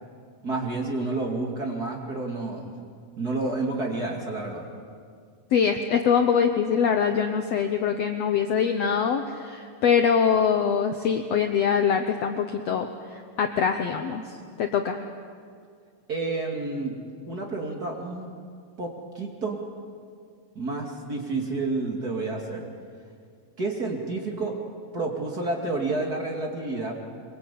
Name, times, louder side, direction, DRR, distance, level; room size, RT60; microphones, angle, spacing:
voice 1, 0.4-2.7 3.2-4.6 16.1-16.9 17.3-18.3 18.8-19.6 20.5-22.7 23.6-24.6 24.9-26.9, right 3 dB, 30° right, 1 dB, 2.6 m, -30 dB
voice 2, 5.5-12.9 13.4-14.2 14.6-15.0, left 7 dB, 70° left, 6 dB, 1.7 m, -23 dB
24.0 x 23.0 x 8.5 m, 2.1 s
omnidirectional pair, 3.9 m